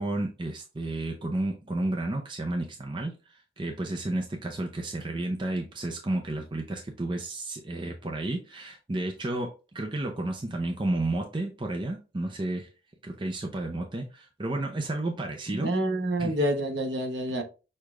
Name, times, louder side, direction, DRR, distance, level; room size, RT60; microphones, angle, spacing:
voice 1, 0.0-12.7 13.0-15.8 16.2-16.3, right 2 dB, 25° right, 0.5 m, -32 dB
voice 2, 15.6-17.4, right 1 dB, 60° right, 1.0 m, -27 dB
6.4 x 2.4 x 3.2 m
head